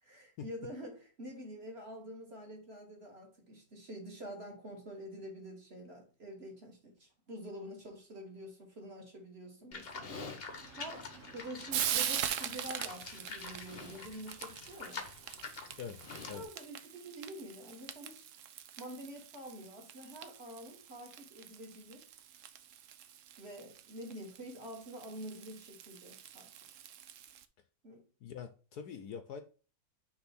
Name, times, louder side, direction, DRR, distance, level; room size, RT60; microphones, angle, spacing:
voice 1, 0.0-15.0 16.3-18.3 18.8-22.1 23.4-26.5 27.8-28.0, equal, 35° right, 2.2 m, -47 dB
Livestock farm animals working animals, 9.7-16.5, left 4 dB, 40° left, 1.0 m, -46 dB
Frying (food), 10.5-27.5, right 10 dB, 75° right, 0.7 m, -43 dB
voice 2, 28.2-29.4, left 7 dB, 65° left, 1.2 m, -44 dB
6.2 x 3.4 x 5.9 m
omnidirectional pair, 2.0 m